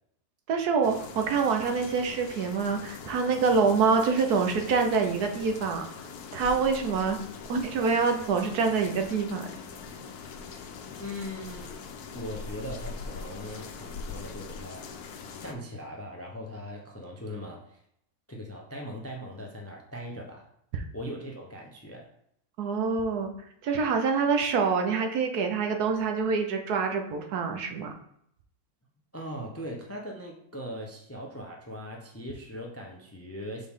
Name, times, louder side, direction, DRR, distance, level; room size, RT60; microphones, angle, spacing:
voice 1, 0.5-5.9 6.3-7.2 7.5-9.5 22.6-23.3 23.6-27.9, right 5 dB, 85° right, 5 dB, 1.3 m, -26 dB
sound 1, 0.8-15.5, left 5 dB, 85° left, 1.2 m, -42 dB
voice 2, 10.8-11.7 12.1-14.9 15.4-17.8 18.3-20.5 20.9-22.1 29.1-33.7, equal, 20° left, 0 dB, 0.4 m, -40 dB
6.4 x 4.1 x 3.6 m, 0.72 s
omnidirectional pair, 1.6 m